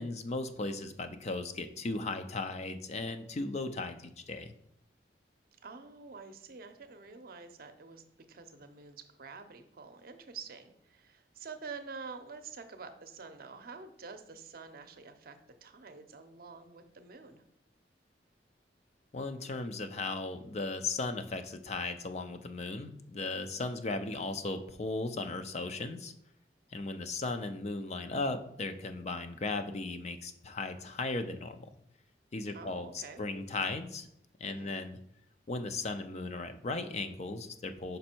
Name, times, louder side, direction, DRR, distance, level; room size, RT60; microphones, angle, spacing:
voice 1, 0.0-4.5 19.1-26.1 26.7-31.6 32.3-34.1 34.4-35.0 35.5-38.0, left 3 dB, 40° left, 9 dB, 0.5 m, -36 dB
voice 2, 5.6-8.0 8.3-17.4 32.5-33.2 34.4-34.8, right 4 dB, 55° right, 7 dB, 0.7 m, -48 dB
5.3 x 5.3 x 4.4 m, 0.74 s
head